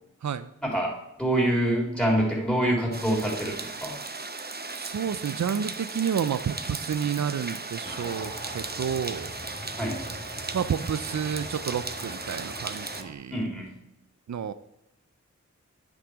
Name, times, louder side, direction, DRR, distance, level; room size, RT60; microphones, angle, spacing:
voice 1, 0.6-0.9 1.2-4.0 9.8-10.0 13.3-13.7, right 1 dB, 5° left, -3 dB, 3.8 m, -25 dB
sound 1, 2.9-13.0, right 3 dB, 30° right, 0.8 m, -37 dB
voice 2, 4.7-9.3 10.5-13.4 14.3-14.5, right 7 dB, 65° right, 12 dB, 0.5 m, -30 dB
sound 2, 7.8-13.1, left 1 dB, 25° left, 2.0 m, -42 dB
10.0 x 6.1 x 5.0 m, 0.89 s
wide cardioid pair, 60°, 31 cm